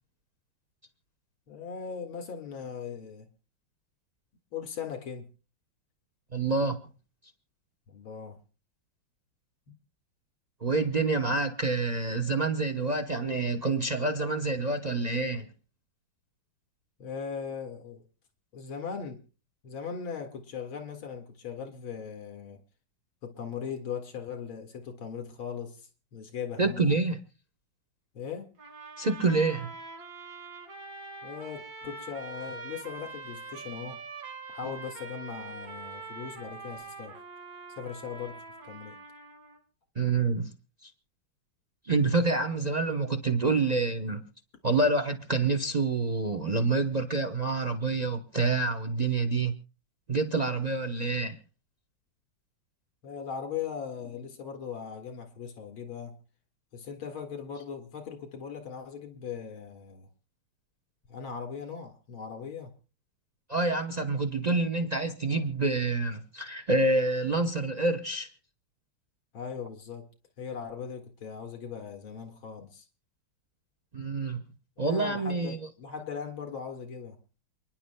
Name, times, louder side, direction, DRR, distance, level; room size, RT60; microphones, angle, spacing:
voice 1, 1.5-3.3 4.5-5.3 7.9-8.4 17.0-18.0 18.5-19.2 19.6-22.6 23.2-27.0 28.1-28.5 31.2-34.0 34.5-37.2 37.8-39.0 53.0-56.2 56.7-60.1 61.1-62.7 69.3-70.1 70.4-72.9 74.8-77.2, left 6 dB, 75° left, 2.7 m, -39 dB
voice 2, 6.3-6.8 10.6-15.5 26.6-27.2 29.0-29.7 40.0-40.5 40.8-40.9 41.8-44.2 44.6-49.5 50.1-51.4 63.5-68.3 73.9-74.4 74.8-75.6, right 3 dB, 90° right, 0.3 m, -27 dB
sound 1, 28.6-39.6, right 3 dB, 60° right, 3.2 m, -44 dB
28.5 x 10.5 x 2.2 m
omnidirectional pair, 2.3 m